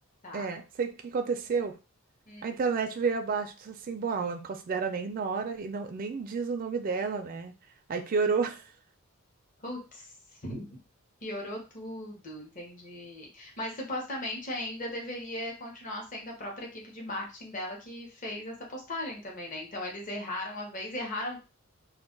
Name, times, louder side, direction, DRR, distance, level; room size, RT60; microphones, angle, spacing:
voice 1, 0.3-1.7 2.4-7.5 7.9-8.6, right 5 dB, 40° right, 5 dB, 0.3 m, -31 dB
voice 2, 2.3-2.6 9.6-10.1 10.4-10.8 11.2-21.4, left 1 dB, 35° left, -1 dB, 0.8 m, -38 dB
2.3 x 2.1 x 3.7 m, 0.30 s
head